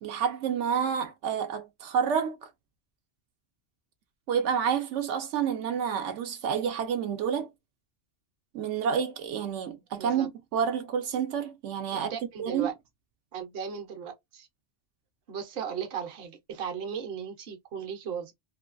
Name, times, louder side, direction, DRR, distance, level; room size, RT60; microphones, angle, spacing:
voice 1, 0.0-2.5 4.3-7.5 8.5-12.1 12.4-12.7, right 7 dB, 85° right, 0.9 m, -29 dB
voice 2, 10.0-10.3 11.9-12.7 13.3-14.5 15.3-18.3, right 7 dB, 60° right, 0.9 m, -36 dB
3.2 x 2.3 x 2.4 m
omnidirectional pair, 1.2 m